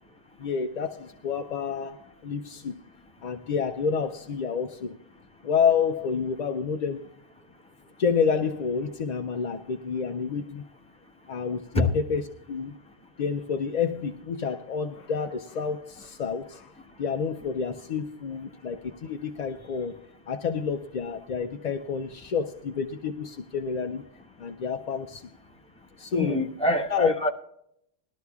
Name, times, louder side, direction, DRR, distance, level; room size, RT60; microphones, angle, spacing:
voice 1, 0.4-2.8 3.2-5.0 5.4-7.1 8.0-10.6 11.3-12.2 12.5-12.8 13.2-16.7 17.0-19.9 20.3-24.0 24.4-25.3 26.0-26.4 26.9-27.1, left 6 dB, 50° left, 0.5 m, -29 dB
voice 2, 26.1-27.3, left 1 dB, 5° left, 1.1 m, -25 dB
19.5 x 12.5 x 2.3 m
omnidirectional pair, 1.2 m